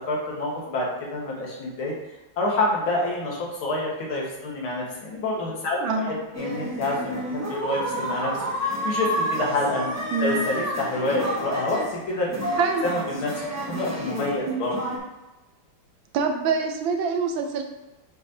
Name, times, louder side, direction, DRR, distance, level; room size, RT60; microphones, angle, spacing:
voice 1, 0.1-2.0 2.4-8.3 8.6-12.5 12.8-14.8, left 2 dB, 85° left, -3 dB, 2.3 m, -28 dB
voice 2, 5.8-6.2 10.1-10.4 12.6-12.9 14.5-14.6 16.1-17.6, right 4 dB, 75° right, 4 dB, 1.5 m, -25 dB
sound 1, 6.3-15.0, equal, 20° right, 0.4 m, -30 dB
7.3 x 4.9 x 2.7 m, 1.0 s
omnidirectional pair, 2.2 m